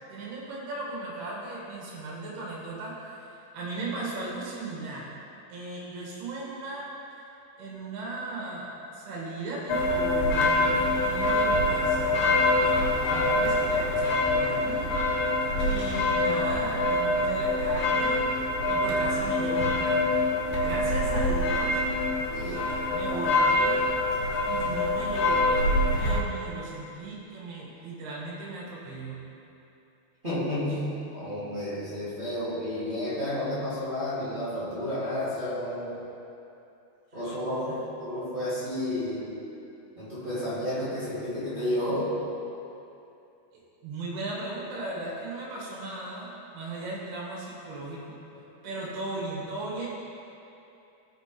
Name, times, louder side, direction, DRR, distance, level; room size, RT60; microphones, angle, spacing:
voice 1, 0.1-3.2 3.5-5.1 5.5-6.9 7.6-15.2 15.6-18.3 18.7-20.2 20.6-21.8 22.4-23.8 24.4-29.2 37.1-37.2 37.7-37.8 43.8-48.0 48.6-49.9, right 2 dB, 70° right, -5 dB, 3.7 m, -37 dB
sound 1, 9.7-26.2, left 2 dB, 80° left, 3.2 m, -25 dB
voice 2, 22.3-22.6 23.1-23.2 30.2-36.0 37.1-39.4 40.0-42.2, left 1 dB, 25° right, -12 dB, 1.2 m, -31 dB
17.0 x 6.0 x 3.2 m, 2.8 s
omnidirectional pair, 4.8 m